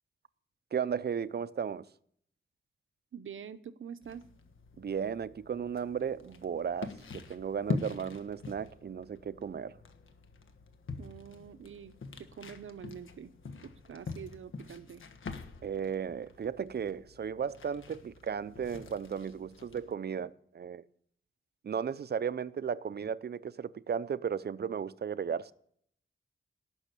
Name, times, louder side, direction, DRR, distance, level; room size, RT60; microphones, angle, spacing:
voice 1, 0.7-1.8 4.8-9.8 15.6-20.8 21.6-25.5, right 7 dB, 55° right, 0.6 m, -35 dB
voice 2, 3.1-4.2 11.0-13.3 13.6-15.0, right 7 dB, 90° right, 0.9 m, -46 dB
sound 1, 4.0-19.9, left 4 dB, 90° left, 1.4 m, -44 dB
18.5 x 6.3 x 8.3 m
wide cardioid pair, 165°, 20 cm